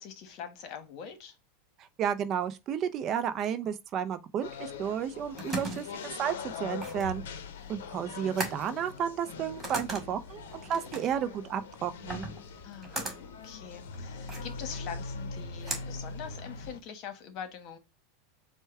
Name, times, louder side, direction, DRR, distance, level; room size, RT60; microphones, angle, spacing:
voice 1, 0.0-1.4 12.6-17.8, left 7 dB, 50° left, 1.1 m, -43 dB
voice 2, 1.8-7.2 7.7-12.3, right 8 dB, 35° right, 0.5 m, -32 dB
sound 1, 4.4-16.8, left 4 dB, 80° left, 0.6 m, -42 dB
sound 2, 4.9-16.8, right 2 dB, 15° right, 1.9 m, -40 dB
4.6 x 2.2 x 4.4 m
supercardioid pair, 130°, 0 cm